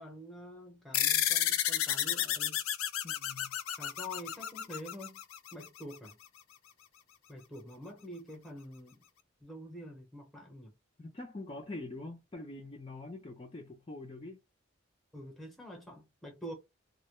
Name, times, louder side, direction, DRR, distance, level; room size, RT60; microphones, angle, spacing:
voice 1, 0.0-2.6 3.8-5.2 5.5-6.2 7.3-9.0 9.4-10.7 15.1-16.5, equal, ahead, 0.8 m, -46 dB
sound 1, 0.9-5.8, left 11 dB, 85° left, 0.4 m, -32 dB
voice 2, 3.0-3.6 11.0-14.4, left 2 dB, 25° left, 0.4 m, -44 dB
2.1 x 2.1 x 2.9 m
head